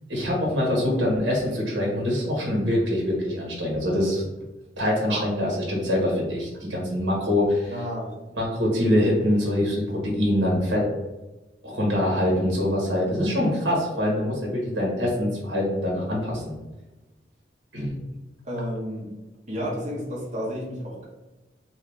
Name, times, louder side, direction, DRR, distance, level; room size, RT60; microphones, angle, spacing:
voice 1, 0.1-4.3 4.8-7.7 8.4-10.8 11.6-16.5 17.7-18.0, left 1 dB, 80° right, -3 dB, 1.1 m, -24 dB
voice 2, 7.7-8.1 18.4-19.1 19.5-21.1, equal, 40° right, -5 dB, 1.1 m, -31 dB
2.7 x 2.6 x 3.3 m, 1.1 s
head